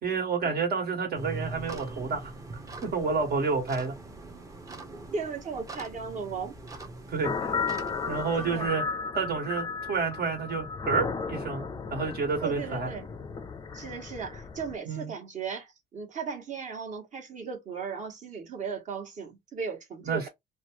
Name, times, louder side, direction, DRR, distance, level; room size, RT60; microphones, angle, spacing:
voice 1, 0.0-2.3 2.8-3.9 7.1-7.6 8.1-8.8 9.1-11.6 11.9-12.9 14.8-15.1 20.0-20.3, right 5 dB, 65° right, 1.7 m, -29 dB
sound 1, 1.1-8.7, right 2 dB, 20° right, 0.7 m, -42 dB
voice 2, 5.1-6.5 8.4-8.7 12.4-13.1 13.7-20.3, right 5 dB, 45° right, 1.3 m, -36 dB
sound 2, 7.2-14.8, left 5 dB, 25° left, 0.4 m, -34 dB
2.9 x 2.3 x 3.0 m
cardioid pair, 110°, 17 cm